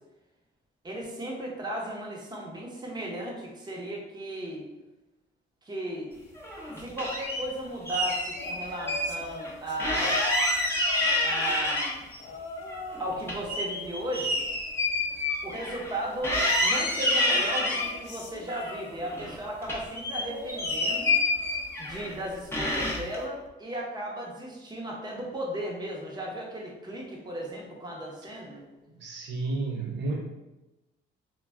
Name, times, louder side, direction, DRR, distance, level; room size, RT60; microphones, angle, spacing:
voice 1, 0.8-4.6 5.6-6.1 6.8-10.2 11.2-12.1 13.0-14.4 15.4-21.1 21.8-28.6, right 1 dB, 20° right, -2 dB, 0.8 m, -36 dB
sound 1, 6.4-7.4 7.9-9.1 9.4-9.5 9.8-12.2 12.6-16.0 16.2-17.9 18.5-19.4 19.6-22.1 22.5-23.2, left 1 dB, 10° left, 0.7 m, -28 dB
sound 2, 8.3-11.7 12.2-13.2 13.5-15.0 17.1-19.3 20.1-21.6 22.0-22.3 23.5-23.6, left 2 dB, 65° left, 0.5 m, -41 dB
voice 2, 28.9-30.2, right 3 dB, 65° right, -1 dB, 0.5 m, -31 dB
2.2 x 2.2 x 3.4 m, 1.0 s
cardioid pair, 90°, 20 cm